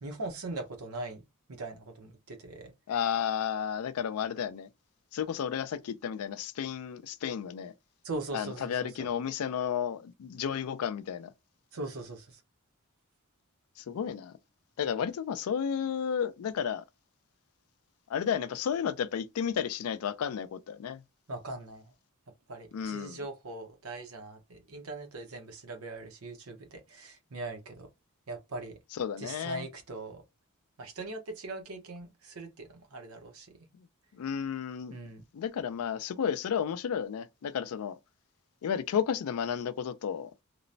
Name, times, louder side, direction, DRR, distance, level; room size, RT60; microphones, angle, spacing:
voice 1, 0.0-1.2 1.6-2.7 8.0-9.1 11.7-12.4 21.3-21.8 22.5-27.9 28.3-28.8 29.2-30.2 30.8-33.5 34.9-35.2, right 2 dB, 70° right, 0.8 m, -40 dB
voice 2, 2.9-4.7 5.1-7.7 8.3-11.3 13.8-14.3 14.8-16.8 18.1-21.0 22.7-23.2 28.9-29.7 33.8-33.9 34.1-35.0 35.3-38.0 38.6-40.3, left 8 dB, 75° left, 0.3 m, -32 dB
3.0 x 2.0 x 2.6 m
head